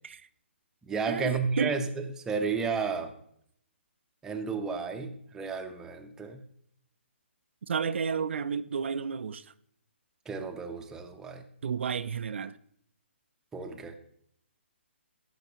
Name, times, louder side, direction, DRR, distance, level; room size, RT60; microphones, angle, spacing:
voice 1, 0.9-3.1 4.2-6.4 10.3-11.4 13.5-14.0, right 5 dB, 10° right, 0.7 m, -32 dB
voice 2, 7.7-9.5 11.6-12.6, right 6 dB, 65° right, 0.4 m, -31 dB
14.0 x 6.0 x 2.9 m
hypercardioid pair, 145°, 7 cm